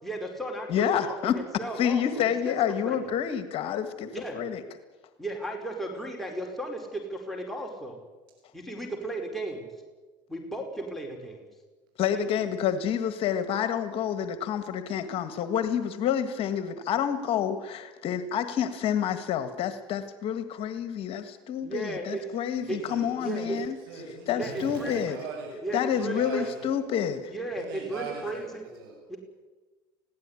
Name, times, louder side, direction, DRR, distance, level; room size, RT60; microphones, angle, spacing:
voice 1, 0.0-2.5 2.8-3.1 4.1-4.4 5.2-8.0 8.5-9.7 10.3-11.5 12.1-12.3 21.6-22.2 22.7-22.8 23.2-23.6 24.3-25.2 25.6-26.5 27.3-28.6 29.1-29.2, right 2 dB, ahead, 0 dB, 4.7 m, -35 dB
voice 2, 0.7-1.4 1.8-4.6 12.0-23.8 24.3-25.2 25.7-27.3, left 9 dB, 55° left, 10 dB, 1.7 m, -28 dB
voice 3, 22.6-23.6 23.8-26.7 27.5-29.0, right 4 dB, 85° right, 0 dB, 7.3 m, -41 dB
21.0 x 16.5 x 9.8 m, 1.3 s
supercardioid pair, 100°, 11 cm